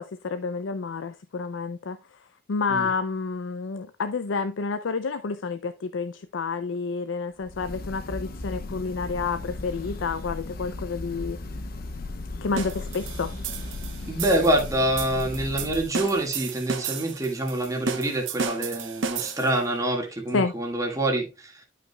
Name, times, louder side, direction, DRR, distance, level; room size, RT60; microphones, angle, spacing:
voice 1, 0.0-2.0 2.5-11.4 12.4-13.3 20.3-20.5, left 4 dB, 75° left, 0.5 m, -29 dB
Breathing / Bird, 7.4-16.0, left 2 dB, 50° left, 1.0 m, -36 dB
sound 1, 12.6-19.7, right 5 dB, 75° right, 0.9 m, -34 dB
voice 2, 14.1-21.6, right 1 dB, 15° right, 1.9 m, -26 dB
11.5 x 5.6 x 2.3 m
head